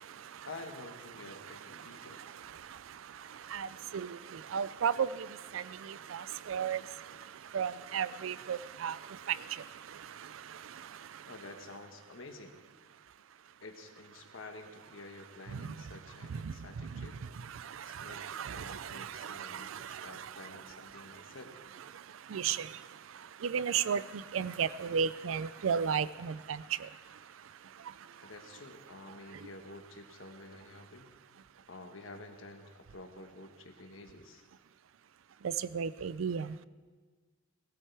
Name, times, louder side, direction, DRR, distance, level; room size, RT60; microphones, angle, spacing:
voice 1, 0.4-2.2 11.2-12.6 13.6-17.2 17.8-18.2 18.5-21.6 28.2-31.1 31.7-34.4, left 2 dB, 75° left, 5 dB, 1.3 m, -50 dB
voice 2, 4.5-5.3 5.5-6.8 7.5-9.0 9.3-9.4 16.4-16.5 17.0-17.1 18.0-19.9 22.3-22.7 23.4-26.6 35.6-36.5, right 7 dB, 75° right, 17 dB, 0.4 m, -33 dB
18.5 x 13.0 x 3.4 m, 1.5 s
head